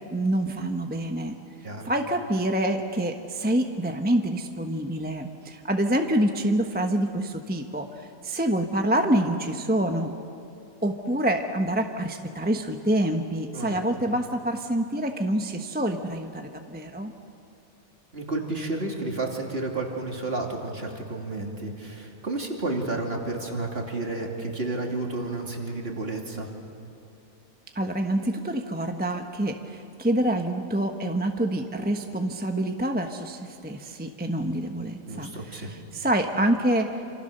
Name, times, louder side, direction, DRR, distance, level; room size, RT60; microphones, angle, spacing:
voice 1, 0.1-1.3 1.8-10.1 10.8-17.1 27.7-37.0, right 1 dB, 5° right, 4 dB, 1.0 m, -26 dB
voice 2, 18.1-26.5 35.1-35.7, right 2 dB, 40° right, 1 dB, 3.0 m, -31 dB
28.0 x 26.5 x 6.7 m, 2.6 s
omnidirectional pair, 1.5 m